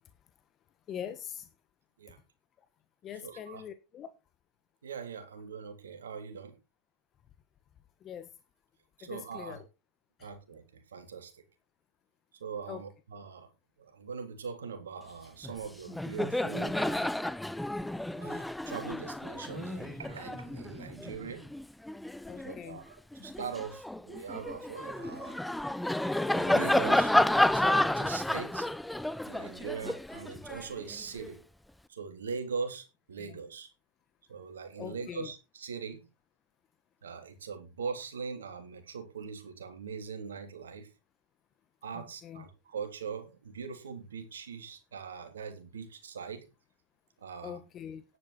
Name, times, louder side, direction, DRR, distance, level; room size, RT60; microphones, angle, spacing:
voice 1, 0.9-1.5 3.0-4.1 8.0-8.3 9.0-9.6 10.2-10.3 12.7-12.8 22.3-22.8 33.2-33.4 34.8-35.3 41.9-42.4 47.4-48.0, left 9 dB, 30° left, 1.3 m, -43 dB
voice 2, 3.2-3.6 4.8-6.6 9.0-9.6 10.2-11.4 12.4-13.5 13.8-17.1 18.2-21.5 22.4-25.4 26.3-27.1 27.4-28.7 29.2-31.4 31.9-33.7 34.3-36.0 37.0-40.9 41.8-46.5 47.2-47.6, right 6 dB, 80° right, 3.3 m, -41 dB
Laughter, 15.4-15.6 15.9-22.6 23.1-31.3, left 1 dB, 5° left, 0.6 m, -31 dB
10.5 x 10.0 x 4.3 m
hypercardioid pair, 105°, 0 cm